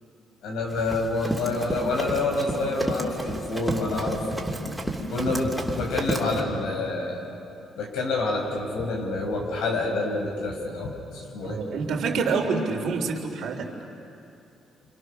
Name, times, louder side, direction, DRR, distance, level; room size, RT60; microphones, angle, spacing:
voice 1, 0.4-4.5 5.1-7.2 7.8-11.6, left 2 dB, 90° left, 0 dB, 5.8 m, -27 dB
Run, 0.7-6.4, right 1 dB, 5° right, 2.9 m, -31 dB
voice 2, 11.4-13.7, right 4 dB, 75° right, 1 dB, 3.7 m, -27 dB
28.5 x 27.0 x 6.6 m, 2.7 s
cardioid pair, 90°, 0 cm